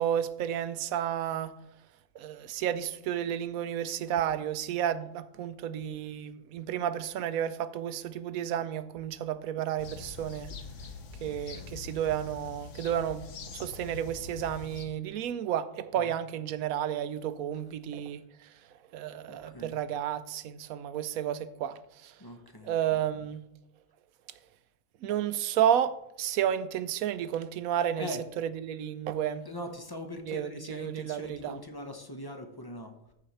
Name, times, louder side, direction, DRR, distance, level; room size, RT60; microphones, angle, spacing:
voice 1, 0.0-1.5 2.1-10.5 11.2-18.2 18.9-22.1 22.6-23.5 25.0-29.5 30.2-31.6, right 10 dB, 90° right, 1.1 m, -32 dB
sound 1, 9.8-14.9, left 5 dB, 65° left, 1.2 m, -44 dB
voice 2, 11.3-11.8 15.9-16.2 19.3-19.8 22.2-23.2 28.0-28.2 29.4-33.1, left 1 dB, 20° left, 0.8 m, -42 dB
14.0 x 4.8 x 4.2 m
omnidirectional pair, 1.4 m